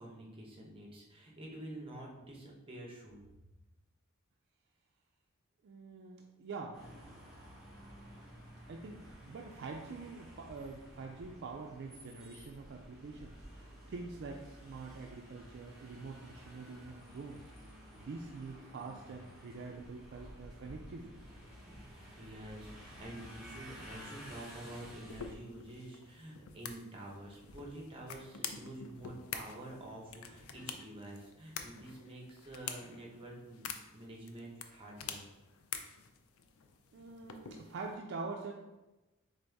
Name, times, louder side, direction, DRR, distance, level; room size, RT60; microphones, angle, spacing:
voice 1, 0.0-3.2 21.7-21.8 22.2-35.2, right 1 dB, 25° right, -2 dB, 0.8 m, -48 dB
voice 2, 5.6-7.0 8.7-21.2 36.9-38.5, right 4 dB, 55° right, 1 dB, 0.3 m, -45 dB
sound 1, 6.7-25.3, equal, ahead, 1.2 m, -53 dB
sound 2, 25.1-37.9, left 7 dB, 75° left, 0.4 m, -47 dB
4.0 x 3.7 x 3.4 m, 1.1 s
head